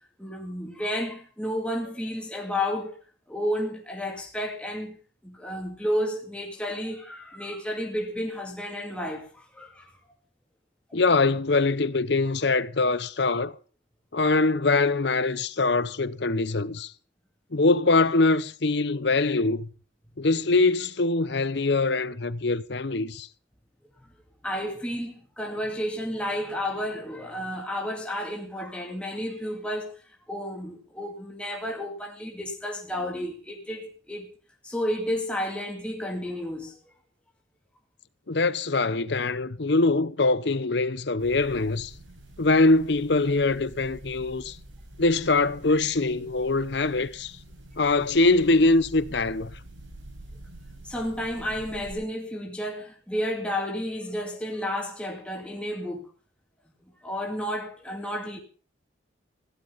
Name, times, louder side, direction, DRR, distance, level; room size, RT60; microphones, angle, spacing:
voice 1, 0.2-3.0 3.3-5.0 5.2-9.9 24.0-24.1 24.4-30.0 30.3-34.3 34.6-36.7 50.8-56.1 57.0-58.4, equal, 5° left, 2.3 m, -31 dB
voice 2, 10.9-13.6 14.1-16.9 17.5-19.7 20.2-23.3 38.3-41.9 42.4-44.6 45.0-47.4 47.8-49.5, left 3 dB, 65° left, 0.8 m, -23 dB
sound 1, 41.2-51.9, right 1 dB, 85° right, 7.0 m, -47 dB
16.0 x 12.0 x 5.6 m
head